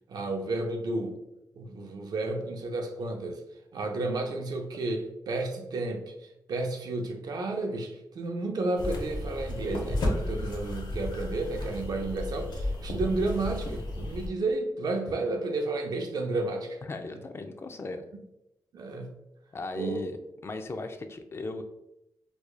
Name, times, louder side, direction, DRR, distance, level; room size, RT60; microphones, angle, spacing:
voice 1, 0.1-1.2 1.5-3.4 3.7-16.8 18.7-19.1 19.8-20.0, right 2 dB, 65° right, 3 dB, 0.6 m, -32 dB
sound 1, 8.8-14.3, left 1 dB, 80° left, 0.8 m, -33 dB
voice 2, 16.9-18.0 19.5-20.2 20.4-21.6, left 3 dB, 35° left, 7 dB, 0.4 m, -37 dB
4.7 x 2.4 x 2.3 m, 0.88 s
wide cardioid pair, 105°, 7 cm